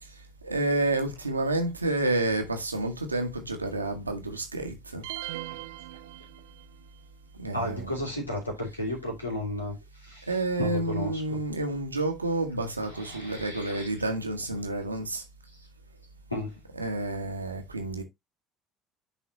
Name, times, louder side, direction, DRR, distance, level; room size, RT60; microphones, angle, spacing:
voice 1, 0.0-5.0 7.4-8.0 10.3-15.2 16.7-18.0, right 2 dB, 85° right, 1.2 m, -30 dB
sound 1, 5.0-6.9, right 16 dB, 65° right, 0.5 m, -39 dB
voice 2, 7.5-9.8 10.0-11.4 12.9-13.9 16.3-16.6, left 1 dB, 85° left, 2.6 m, -34 dB
10.0 x 4.1 x 2.9 m
figure-of-eight pair, 60°, 0 cm